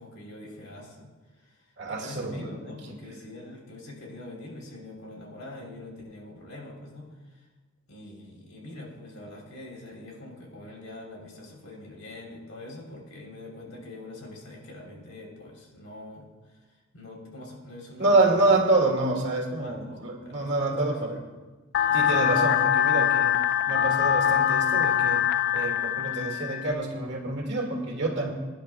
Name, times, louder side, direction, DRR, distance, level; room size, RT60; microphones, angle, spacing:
voice 1, 0.0-7.4 7.9-16.6 16.9-18.6 19.6-21.2 21.9-22.2, left 2 dB, 85° left, -1 dB, 3.5 m, -44 dB
voice 2, 1.8-2.5 2.9-3.0 18.0-21.2 21.9-23.3 23.7-25.2 25.5-28.3, right 2 dB, 55° right, 1 dB, 2.0 m, -26 dB
sound 1, 21.7-26.7, left 10 dB, 55° left, 0.3 m, -23 dB
22.5 x 10.5 x 2.3 m, 1.3 s
head